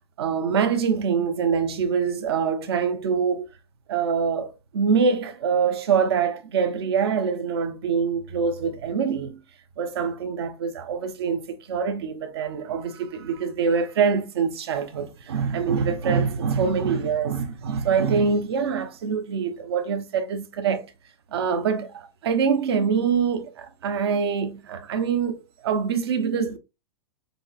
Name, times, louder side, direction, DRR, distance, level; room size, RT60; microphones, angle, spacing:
voice 1, 0.2-3.5 3.9-9.4 9.8-20.9 21.3-26.6, right 6 dB, 60° right, 0.9 m, -24 dB
7.3 x 2.8 x 2.4 m
supercardioid pair, 180°, 15 cm